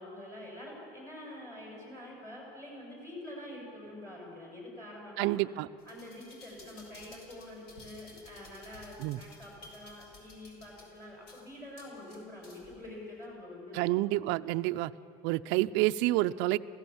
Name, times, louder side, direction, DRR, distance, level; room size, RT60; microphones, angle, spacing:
voice 1, 0.0-5.5 5.8-14.0 15.4-15.7, left 1 dB, 10° left, -3 dB, 6.3 m, -46 dB
voice 2, 5.2-5.7 9.0-9.2 13.7-14.9 15.2-16.6, right 17 dB, 65° right, 11 dB, 0.6 m, -28 dB
sound 1, 5.8-12.8 13.2-13.3, left 2 dB, 55° left, 5.2 m, -55 dB
27.5 x 16.5 x 7.1 m, 2.6 s
cardioid pair, 140°, 20 cm